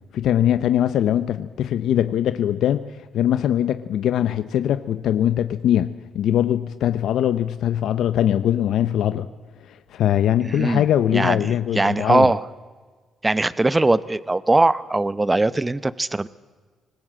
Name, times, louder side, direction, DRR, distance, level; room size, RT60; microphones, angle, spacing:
voice 1, 0.1-9.3 9.7-12.3, left 11 dB, 80° left, 12 dB, 0.8 m, -21 dB
voice 2, 10.4-10.8 11.1-12.5 13.2-16.3, right 2 dB, 15° right, 18 dB, 0.8 m, -20 dB
25.5 x 19.5 x 7.6 m, 1.4 s
cardioid pair, 115°, 0 cm